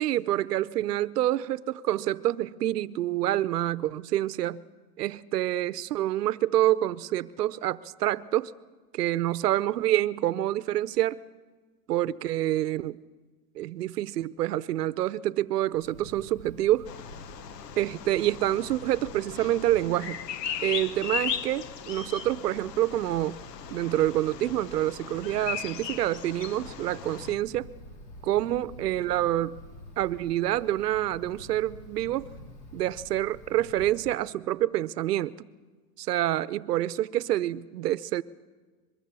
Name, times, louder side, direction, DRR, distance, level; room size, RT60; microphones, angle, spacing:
voice 1, 0.0-4.6 5.0-8.5 8.9-11.2 11.9-13.0 13.6-16.9 17.8-20.2 20.6-23.4 23.7-27.7 28.2-29.6 30.0-32.3 32.7-35.5 36.0-38.2, right 13 dB, 75° right, 0.9 m, -27 dB
Wind, 15.7-34.1, left 1 dB, 15° left, 0.9 m, -48 dB
Bird vocalization bird call bird song, 16.9-27.3, left 9 dB, 90° left, 1.1 m, -37 dB
23.5 x 22.5 x 6.9 m
supercardioid pair, 165°, 48 cm